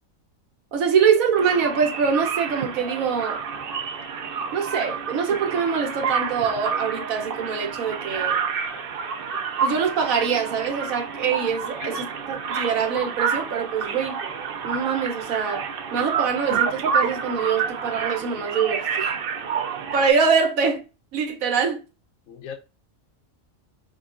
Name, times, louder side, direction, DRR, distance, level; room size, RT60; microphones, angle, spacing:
voice 1, 0.7-3.4 4.5-8.4 9.6-14.2 14.6-15.7 15.9-19.1 19.9-20.8 21.1-21.8, right 6 dB, 80° right, 1.3 m, -24 dB
sound 1, 1.4-20.1, right 6 dB, 60° right, 0.6 m, -29 dB
voice 2, 11.8-12.0 22.3-22.5, left 8 dB, 75° left, 1.0 m, -37 dB
5.0 x 2.3 x 2.4 m
omnidirectional pair, 1.4 m